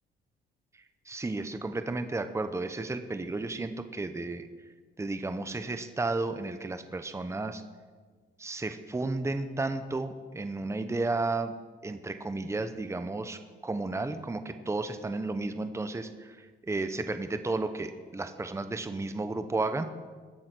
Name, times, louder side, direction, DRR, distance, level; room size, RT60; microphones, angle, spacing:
voice 1, 1.1-4.5 5.0-7.6 8.4-11.5 11.8-19.8, right 3 dB, 15° right, 9 dB, 0.9 m, -33 dB
21.5 x 7.6 x 6.1 m, 1.5 s
cardioid pair, 90°, 20 cm